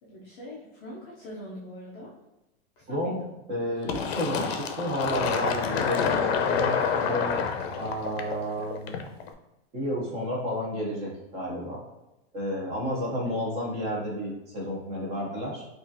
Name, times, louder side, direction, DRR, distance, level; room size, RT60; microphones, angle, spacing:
voice 1, 0.0-2.1 2.8-3.2 6.9-7.4 13.2-13.3, left 1 dB, 25° left, -5 dB, 0.5 m, -43 dB
voice 2, 2.9-3.2 3.5-7.3 7.8-9.0 9.7-11.8 12.3-15.7, equal, 20° right, -3 dB, 0.7 m, -31 dB
Fill (with liquid), 3.9-9.3, left 6 dB, 65° left, 0.6 m, -28 dB
4.7 x 2.5 x 2.6 m, 0.96 s
supercardioid pair, 170°, 32 cm